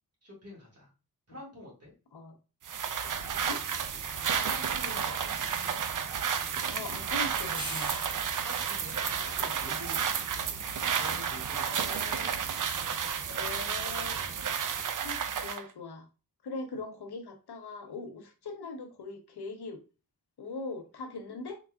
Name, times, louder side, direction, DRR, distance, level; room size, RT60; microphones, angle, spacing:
voice 1, 0.2-0.9 1.3-1.9 4.4-5.3 8.4-10.6 10.9-12.3, left 1 dB, 40° right, -2 dB, 1.9 m, -47 dB
sound 1, 2.6-15.6, right 7 dB, 55° right, 0.5 m, -32 dB
Train, 3.1-14.4, right 1 dB, 15° right, 0.9 m, -47 dB
voice 2, 6.7-7.9 11.7-12.3 13.3-14.6 15.0-16.1 16.4-19.8 20.4-21.6, left 3 dB, 85° left, 6 dB, 0.8 m, -41 dB
4.0 x 3.4 x 2.3 m, 0.32 s
wide cardioid pair, 95°, 38 cm